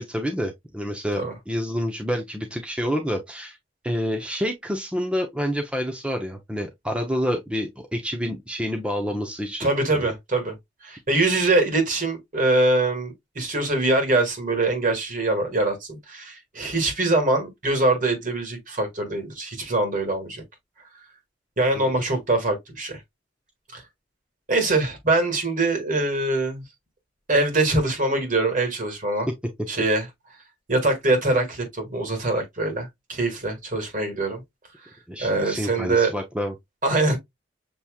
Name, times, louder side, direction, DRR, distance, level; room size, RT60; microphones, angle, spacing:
voice 1, 0.0-3.6 3.8-9.7 21.7-21.9 35.1-36.5, equal, 5° right, 0.7 m, -28 dB
voice 2, 9.6-10.6 10.8-20.4 21.6-23.0 23.7-23.8 24.5-26.6 27.3-29.3 29.7-30.1 30.7-34.4 35.2-36.1 36.8-37.2, right 2 dB, 45° right, 2.1 m, -23 dB
7.0 x 3.1 x 2.3 m
head